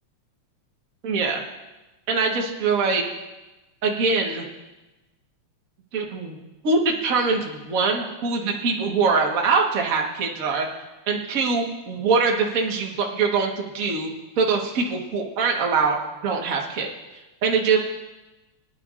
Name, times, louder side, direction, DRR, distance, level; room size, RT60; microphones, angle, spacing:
voice 1, 1.0-1.4 2.1-3.0 3.8-4.4 5.9-6.4 6.6-10.7 11.1-14.1 14.4-15.9 16.2-16.9 17.4-17.8, right 4 dB, 45° right, 0 dB, 1.1 m, -23 dB
23.0 x 10.0 x 2.5 m, 1.1 s
omnidirectional pair, 3.3 m